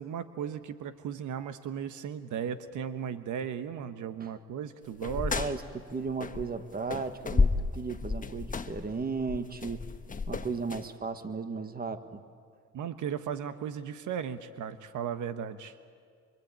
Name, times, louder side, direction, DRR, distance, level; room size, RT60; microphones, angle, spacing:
voice 1, 0.0-5.5 12.7-15.7, right 8 dB, 80° right, 11 dB, 1.2 m, -36 dB
sound 1, 5.0-6.6 6.9-10.9, left 4 dB, 25° left, 1.2 m, -31 dB
voice 2, 5.1-9.8 10.3-12.2, right 4 dB, 30° right, 9 dB, 1.7 m, -35 dB
25.5 x 25.0 x 8.9 m, 2.1 s
cardioid pair, 90°, 30 cm